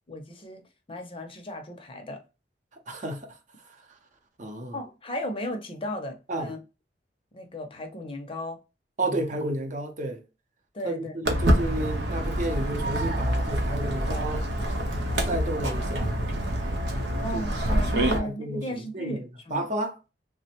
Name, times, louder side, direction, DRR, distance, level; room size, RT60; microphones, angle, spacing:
voice 1, 0.1-0.6 0.9-2.2 4.7-6.6 7.3-8.6 9.0-9.3 10.7-11.5 17.2-19.7, equal, 30° left, 0.6 m, -35 dB
voice 2, 2.9-3.3 4.4-4.8 6.3-6.5 9.0-10.2 10.8-14.5 15.3-16.2 16.9-17.2 17.7-18.6 18.9-19.9, right 1 dB, 45° right, 0.7 m, -32 dB
Walk footsteps, 11.2-18.2, equal, 90° right, 0.8 m, -26 dB
3.3 x 2.1 x 2.8 m
head